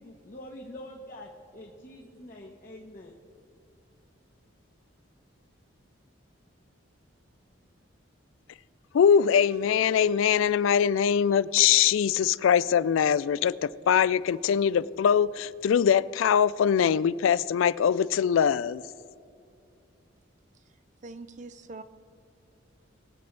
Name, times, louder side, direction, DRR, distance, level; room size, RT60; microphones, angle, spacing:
voice 1, 0.0-3.2, left 1 dB, 40° left, -1 dB, 1.1 m, -45 dB
voice 2, 8.9-18.8, left 8 dB, 85° left, 19 dB, 0.3 m, -22 dB
voice 3, 21.0-21.8, right 3 dB, 40° right, 12 dB, 0.5 m, -42 dB
21.5 x 8.5 x 3.3 m, 2.5 s
head